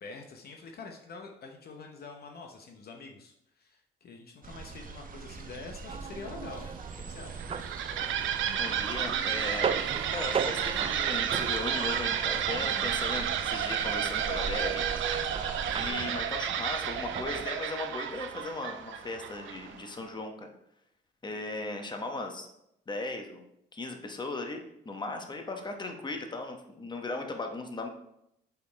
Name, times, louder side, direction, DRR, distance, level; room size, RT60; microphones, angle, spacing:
voice 1, 0.0-6.8 7.1-7.5 12.5-12.9, left 4 dB, 50° left, 2 dB, 0.8 m, -46 dB
sound 1, 4.4-15.9, right 4 dB, 45° right, 0.8 m, -43 dB
sound 2, 5.9-17.5, right 6 dB, 30° right, 0.3 m, -38 dB
sound 3, 7.3-19.9, right 9 dB, 75° right, 0.6 m, -32 dB
voice 2, 8.6-9.8 10.1-14.8 15.6-20.5 21.2-22.5 22.9-23.4 23.7-27.9, left 2 dB, 20° left, 4 dB, 1.0 m, -37 dB
5.4 x 4.3 x 4.6 m, 0.79 s
cardioid pair, 90°, 20 cm